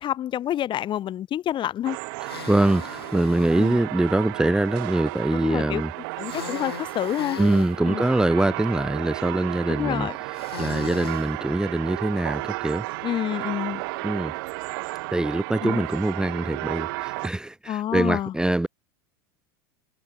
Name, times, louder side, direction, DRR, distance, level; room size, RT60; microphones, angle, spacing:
voice 1, 0.0-2.0 3.6-3.8 5.3-5.8 6.2-7.4 7.8-8.1 9.7-10.1 13.0-13.8 15.6-15.8 17.7-18.3, left 11 dB, 40° left, 4.7 m, -28 dB
sound 1, 1.8-17.3, right 26 dB, 65° right, 1.1 m, -33 dB
sound 2, 2.2-3.7 6.2-7.7 10.3-11.3, left 10 dB, 85° left, 2.0 m, -38 dB
voice 2, 2.5-5.9 7.4-10.1 10.6-12.8 14.0-14.3 15.1-18.7, right 1 dB, 5° right, 1.4 m, -23 dB
hypercardioid pair, 90°, 12 cm